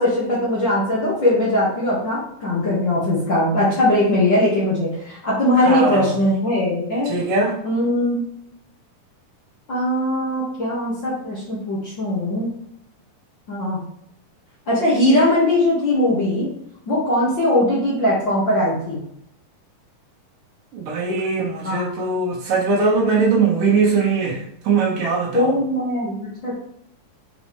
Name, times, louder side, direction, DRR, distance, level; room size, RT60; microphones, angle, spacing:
voice 1, 0.0-7.1 7.6-8.2 9.7-12.5 13.5-13.8 14.7-16.5 16.9-19.0 21.6-21.9 25.3-26.6, left 1 dB, 40° left, -8 dB, 1.9 m, -20 dB
voice 2, 5.5-6.2 7.1-7.6 20.7-25.6, right 4 dB, 70° right, -4 dB, 3.3 m, -21 dB
7.2 x 5.0 x 3.3 m, 0.74 s
omnidirectional pair, 4.1 m